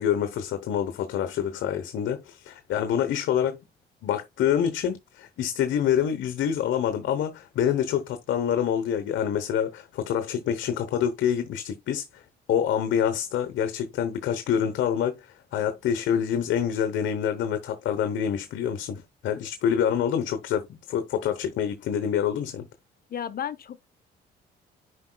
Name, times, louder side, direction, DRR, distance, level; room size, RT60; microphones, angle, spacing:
voice 1, 0.0-3.6 4.0-12.2 12.5-22.6, left 9 dB, 75° left, 0.9 m, -26 dB
voice 2, 23.1-23.9, left 9 dB, 50° left, 0.7 m, -33 dB
10.5 x 4.6 x 2.2 m
cardioid pair, 90°, 20 cm